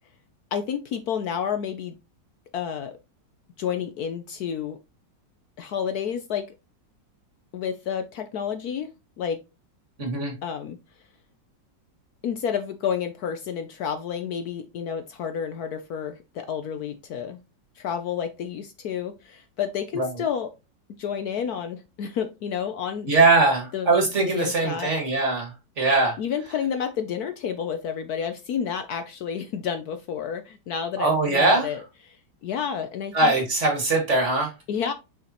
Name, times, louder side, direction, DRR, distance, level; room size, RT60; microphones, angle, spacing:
voice 1, 0.5-2.0 2.5-2.9 3.6-4.8 5.6-6.5 7.5-8.9 9.2-9.4 10.4-10.8 12.2-17.4 17.8-20.5 21.0-23.1 23.7-23.9 24.2-24.9 26.2-31.8 32.1-32.2 32.4-33.3 34.7-34.9, left 8 dB, 65° left, 1.1 m, -30 dB
voice 2, 10.0-10.3 19.9-20.1 23.1-26.2 31.0-31.7 33.1-34.5, right 3 dB, 40° right, 2.0 m, -21 dB
6.5 x 5.2 x 2.9 m
omnidirectional pair, 2.0 m